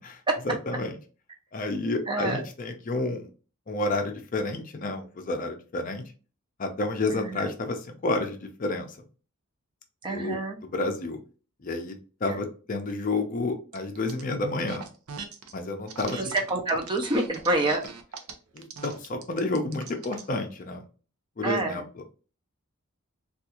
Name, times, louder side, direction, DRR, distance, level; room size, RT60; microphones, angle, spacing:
voice 1, 0.4-1.0 1.5-3.3 3.7-6.0 6.6-9.0 10.1-11.2 11.6-14.8 15.5-16.2 18.5-20.8 21.4-21.8, left 2 dB, 40° left, 5 dB, 0.5 m, -30 dB
voice 2, 2.1-2.4 7.1-7.5 10.0-10.6 12.3-12.4 16.2-17.8 21.4-21.8, right 2 dB, 20° right, 3 dB, 0.5 m, -27 dB
sound 1, 13.7-14.2 14.6-15.5 15.9-20.3, right 6 dB, 85° right, 0.6 m, -41 dB
3.5 x 2.4 x 2.9 m, 0.36 s
head